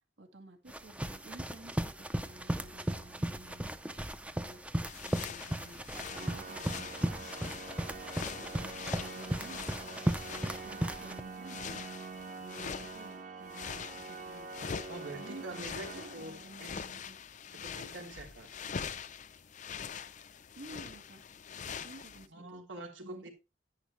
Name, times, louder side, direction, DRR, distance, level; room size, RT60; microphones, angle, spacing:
voice 1, 0.2-4.1 4.3-4.6 4.9-5.8 6.1-7.9 8.1-10.0 10.5-11.8 12.3-14.5 15.1-17.2 17.6-17.8 20.6-21.2 21.7-22.6 23.0-23.3, right 2 dB, 70° right, 1.9 m, -53 dB
sound 1, 0.7-11.2, right 1 dB, 5° right, 0.5 m, -36 dB
sound 2, 4.8-13.1 13.5-22.3, left 7 dB, 40° left, 0.5 m, -44 dB
Organ, 5.9-16.9, right 4 dB, 45° right, 1.3 m, -46 dB
voice 2, 14.9-16.8 17.5-18.5 22.3-23.3, right 2 dB, 90° right, 3.2 m, -45 dB
10.5 x 10.0 x 3.2 m
head